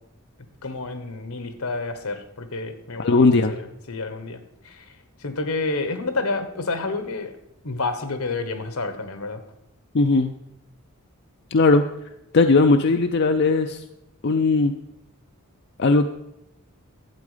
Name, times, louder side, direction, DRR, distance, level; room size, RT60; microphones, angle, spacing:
voice 1, 0.6-7.3 7.6-9.4, left 3 dB, 75° left, 9 dB, 1.3 m, -30 dB
voice 2, 3.0-3.5 9.9-10.3 11.5-11.8 12.3-13.8 14.2-14.7 15.8-16.1, left 3 dB, 50° left, 6 dB, 0.5 m, -18 dB
12.0 x 8.2 x 5.0 m, 0.83 s
head